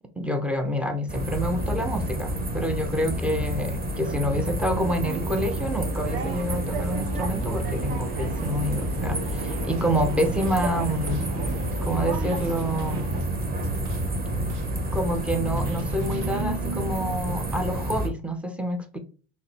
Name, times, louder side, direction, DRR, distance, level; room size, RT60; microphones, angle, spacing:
voice 1, 0.2-11.2 11.8-13.1 14.9-19.0, equal, 5° right, 0.3 m, -28 dB
sound 1, 1.1-18.1, right 1 dB, 20° right, 0.8 m, -29 dB
sound 2, 4.9-13.2, right 5 dB, 55° right, 1.2 m, -36 dB
sound 3, 9.6-16.4, right 6 dB, 70° right, 0.9 m, -46 dB
5.6 x 2.0 x 3.1 m
supercardioid pair, 100°, 47 cm